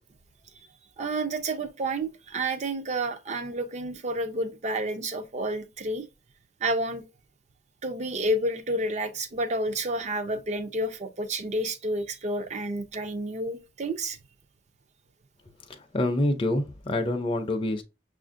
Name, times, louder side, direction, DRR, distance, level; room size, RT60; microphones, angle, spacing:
voice 1, 1.0-6.1 6.6-7.0 7.8-14.2, right 1 dB, 40° right, 0.5 m, -30 dB
voice 2, 15.9-17.8, left 1 dB, 30° left, 0.5 m, -26 dB
6.3 x 2.5 x 2.5 m
head